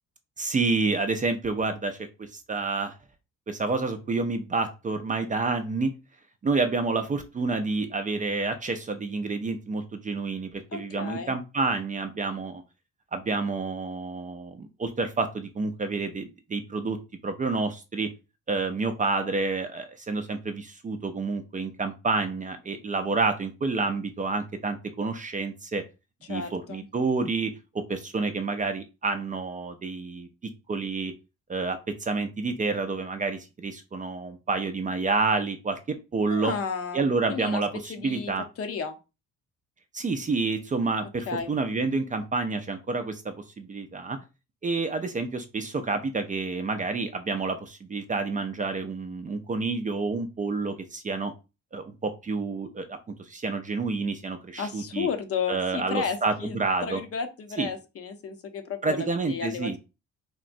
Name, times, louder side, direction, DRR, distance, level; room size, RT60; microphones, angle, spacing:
voice 1, 0.4-2.0 2.3-2.9 3.5-5.9 6.4-12.6 13.1-17.0 17.2-18.1 18.5-25.8 26.3-27.5 27.9-30.3 30.7-31.1 31.5-35.8 36.1-36.5 36.9-38.4 39.9-44.2 44.6-51.3 51.7-53.0 53.3-55.1 55.5-57.0 57.6-57.7 58.8-59.8, right 3 dB, 25° right, 8 dB, 0.4 m, -29 dB
voice 2, 10.7-11.3 26.3-26.9 36.3-37.0 37.3-37.6 37.9-38.3 38.6-39.0 41.3-41.5 54.6-56.6 56.8-59.8, left 6 dB, 50° left, 7 dB, 0.6 m, -33 dB
3.6 x 2.0 x 2.5 m, 0.28 s
cardioid pair, 90°, 30 cm